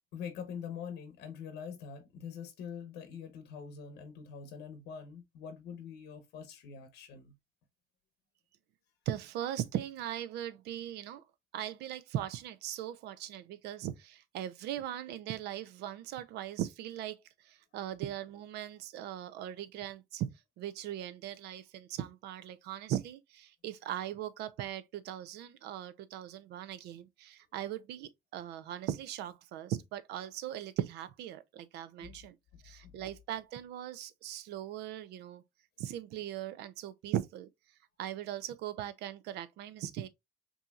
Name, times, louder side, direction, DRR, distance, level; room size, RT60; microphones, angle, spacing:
voice 1, 0.1-7.4 32.0-32.2, left 7 dB, 85° left, 0.8 m, -44 dB
voice 2, 9.1-11.2 11.5-17.2 17.4-20.3 20.6-32.4 32.6-35.4 35.8-37.5 38.0-40.1, right 11 dB, 80° right, 0.5 m, -39 dB
5.5 x 2.8 x 2.3 m
cardioid pair, 110°, 17 cm